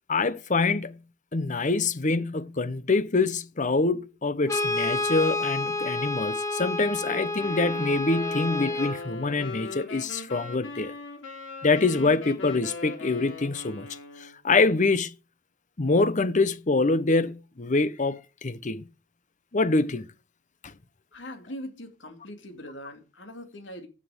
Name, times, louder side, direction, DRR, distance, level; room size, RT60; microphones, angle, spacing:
voice 1, 0.1-1.0 1.3-10.9 11.6-13.9 14.2-15.1 15.8-18.8 19.5-20.1 20.6-20.7, left 3 dB, 40° left, 0.8 m, -25 dB
Brass instrument, 4.5-9.0, left 2 dB, 15° left, 1.4 m, -29 dB
Wind instrument woodwind instrument, 7.4-14.3, left 3 dB, 90° left, 3.4 m, -40 dB
voice 2, 21.1-23.9, equal, 70° left, 2.5 m, -41 dB
15.0 x 6.3 x 5.0 m
head